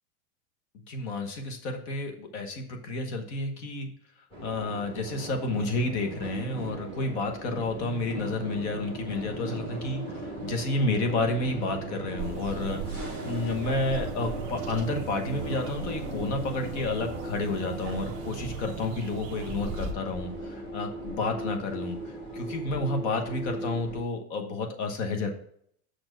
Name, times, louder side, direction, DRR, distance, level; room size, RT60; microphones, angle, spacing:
voice 1, 0.9-3.9 4.4-12.8 13.2-22.0 22.3-25.3, left 3 dB, 50° left, 5 dB, 1.2 m, -30 dB
sound 1, 4.3-24.0, right 1 dB, 10° left, 1.0 m, -38 dB
sound 2, 4.8-19.8, right 11 dB, 70° right, 0.6 m, -42 dB
sound 3, 12.2-19.9, right 6 dB, 25° right, 0.5 m, -41 dB
6.4 x 4.4 x 6.3 m, 0.65 s
supercardioid pair, 175°, 45 cm